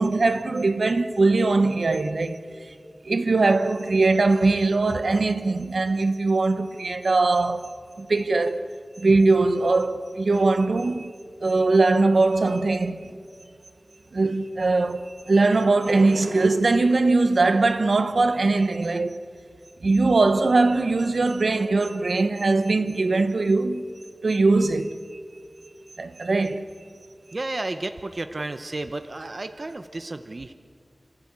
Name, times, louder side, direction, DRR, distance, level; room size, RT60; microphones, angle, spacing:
voice 1, 0.0-2.7 3.0-7.7 8.0-8.7 9.0-11.1 11.4-13.1 14.1-19.2 19.8-23.9 24.2-25.0 26.0-26.7, right 3 dB, 70° right, 1.1 m, -21 dB
voice 2, 27.3-30.5, right 2 dB, 45° right, 0.8 m, -32 dB
27.5 x 14.5 x 8.7 m
wide cardioid pair, 85°, 0 cm